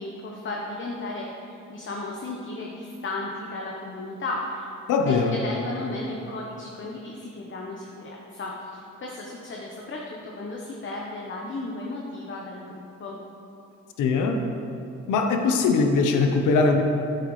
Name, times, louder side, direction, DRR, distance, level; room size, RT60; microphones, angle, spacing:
voice 1, 0.0-4.7 5.1-12.7 13.0-13.2, left 2 dB, 40° left, -2 dB, 1.0 m, -34 dB
voice 2, 4.9-5.3 14.0-14.4 15.1-16.8, left 4 dB, 85° left, 4 dB, 0.8 m, -21 dB
9.2 x 8.8 x 3.2 m, 2.8 s
cardioid pair, 90°, 30 cm